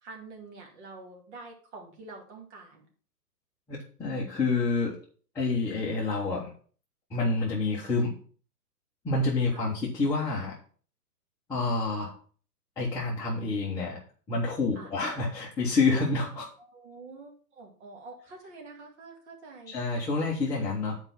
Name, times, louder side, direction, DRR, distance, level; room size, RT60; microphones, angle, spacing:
voice 1, 0.0-2.9 9.5-9.6 14.7-14.9 16.6-19.8, right 3 dB, 45° right, 1 dB, 2.3 m, -47 dB
voice 2, 3.7-4.9 5.3-6.5 7.1-8.1 9.0-10.6 11.5-12.1 12.8-14.0 14.3-16.5 19.7-21.0, left 3 dB, 5° left, -8 dB, 0.9 m, -28 dB
7.7 x 4.6 x 5.7 m, 0.44 s
hypercardioid pair, 150°, 48 cm